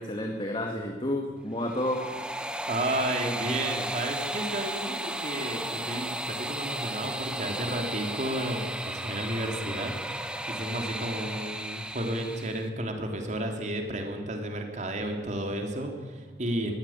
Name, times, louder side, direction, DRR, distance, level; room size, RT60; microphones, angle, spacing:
voice 1, 0.0-2.0, left 1 dB, 30° left, 2 dB, 2.0 m, -30 dB
sound 1, 1.5-12.7, right 1 dB, 5° right, 1.2 m, -34 dB
voice 2, 2.7-10.1 10.5-16.7, right 1 dB, 45° right, 3 dB, 3.2 m, -32 dB
21.5 x 16.0 x 8.8 m, 1.4 s
head